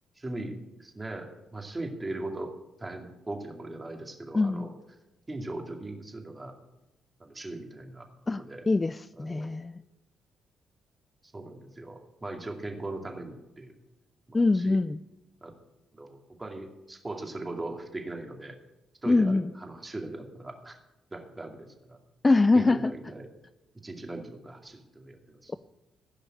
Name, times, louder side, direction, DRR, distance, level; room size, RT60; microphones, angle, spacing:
voice 1, 0.2-4.7 5.3-6.5 7.2-8.6 9.2-9.6 11.3-13.7 14.3-14.8 15.4-15.5 15.9-18.6 19.0-20.8 21.1-22.0 22.5-23.3 23.8-25.6, right 2 dB, 20° right, 3 dB, 2.4 m, -39 dB
voice 2, 4.3-4.7 8.3-9.8 14.3-15.0 19.1-19.5 22.2-22.9, left 3 dB, 20° left, 15 dB, 0.3 m, -24 dB
15.5 x 5.5 x 8.9 m, 0.97 s
cardioid pair, 90°, 0 cm